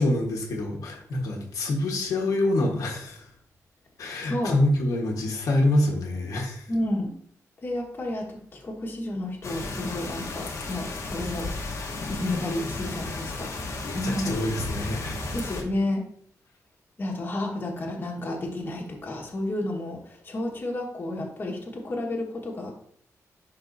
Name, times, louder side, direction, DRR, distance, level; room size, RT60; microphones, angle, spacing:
voice 1, 0.0-3.2 4.0-6.7 13.7-15.2, left 1 dB, 75° left, -1 dB, 1.3 m, -26 dB
voice 2, 4.2-4.6 6.7-7.1 7.6-11.5 12.1-14.3 15.3-16.0 17.0-22.7, left 1 dB, 35° left, -1 dB, 1.5 m, -31 dB
sound 1, 9.4-15.6, left 3 dB, 55° left, 1.2 m, -34 dB
10.5 x 4.0 x 2.7 m, 0.64 s
wide cardioid pair, 130°, 6 cm